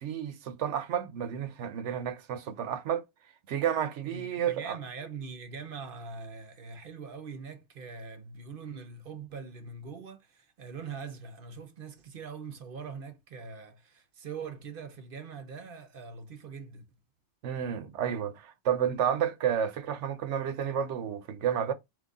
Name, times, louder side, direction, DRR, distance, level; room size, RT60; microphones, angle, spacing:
voice 1, 0.0-3.0 3.5-4.8 17.4-21.7, right 9 dB, 85° right, 1.0 m, -31 dB
voice 2, 4.0-16.9, right 5 dB, 55° right, 0.9 m, -42 dB
3.9 x 3.2 x 3.5 m
omnidirectional pair, 1.2 m